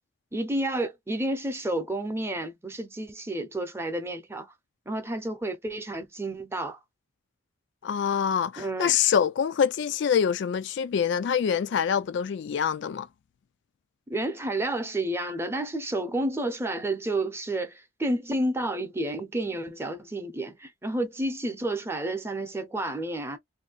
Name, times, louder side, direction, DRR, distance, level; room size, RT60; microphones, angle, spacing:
voice 1, 0.3-4.5 4.9-6.8 8.6-9.0 14.1-23.4, right 1 dB, 10° right, 0.7 m, -30 dB
voice 2, 7.8-13.1, left 7 dB, 60° left, 0.3 m, -25 dB
2.7 x 2.4 x 3.9 m
head